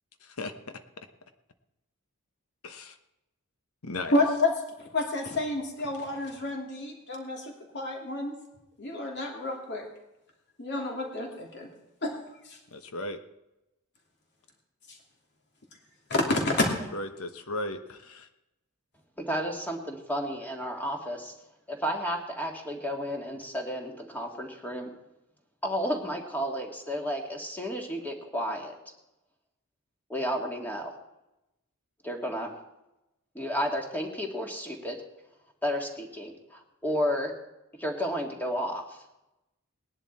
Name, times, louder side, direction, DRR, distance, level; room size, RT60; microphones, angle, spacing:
voice 1, 0.2-0.8 2.6-3.0 3.8-4.1 12.7-13.2 16.9-18.3, left 2 dB, 75° left, 8 dB, 1.2 m, -36 dB
voice 2, 4.1-4.5 4.8-8.3 8.8-9.9 10.6-11.7 12.0-12.2 12.4-12.6 14.9-15.0 16.1-16.7, left 2 dB, 50° left, 1 dB, 2.9 m, -29 dB
voice 3, 19.2-21.3 21.7-24.9 25.6-28.7 30.1-30.9 32.0-32.5 33.4-35.0 35.6-37.3 37.8-39.0, equal, 10° left, 1 dB, 1.9 m, -32 dB
18.5 x 11.0 x 4.3 m, 0.92 s
head